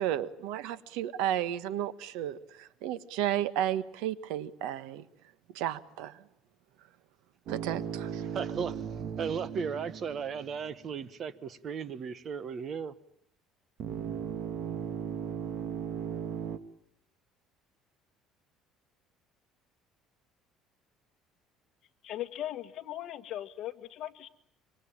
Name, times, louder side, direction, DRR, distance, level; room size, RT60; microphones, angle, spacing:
voice 1, 0.0-2.4 2.8-5.0 5.5-6.1 7.5-8.1, right 11 dB, 90° right, 1.5 m, -32 dB
sound 1, 7.5-10.8 13.8-16.6, right 8 dB, 50° right, 1.8 m, -37 dB
voice 2, 8.2-8.8 9.2-12.9, right 6 dB, 35° right, 1.3 m, -36 dB
voice 3, 22.0-24.3, left 12 dB, 45° left, 1.8 m, -38 dB
26.0 x 24.5 x 8.8 m
cardioid pair, 160°, 0 cm